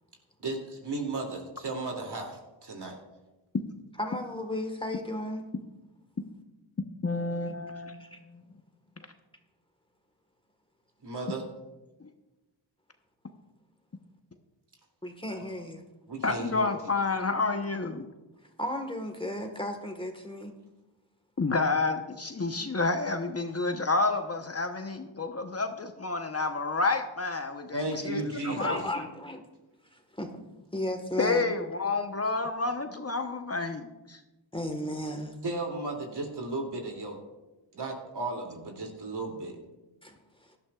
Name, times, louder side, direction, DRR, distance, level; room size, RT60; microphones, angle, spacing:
voice 1, 0.4-3.0 11.0-11.4 16.1-16.7 27.7-28.8 35.4-37.2 37.7-39.6, right 2 dB, 55° right, 1 dB, 2.8 m, -35 dB
voice 2, 4.0-5.4 8.0-8.2 15.0-15.9 18.6-20.5 28.3-29.4 29.9-30.4 30.7-31.5 34.5-35.4 40.0-40.1 40.4-40.5, left 1 dB, 10° left, 4 dB, 1.5 m, -34 dB
voice 3, 7.0-8.4 16.2-18.1 21.4-28.8 31.2-34.2, left 3 dB, 30° left, 6 dB, 1.0 m, -29 dB
17.5 x 12.0 x 2.4 m, 1.0 s
cardioid pair, 55°, 48 cm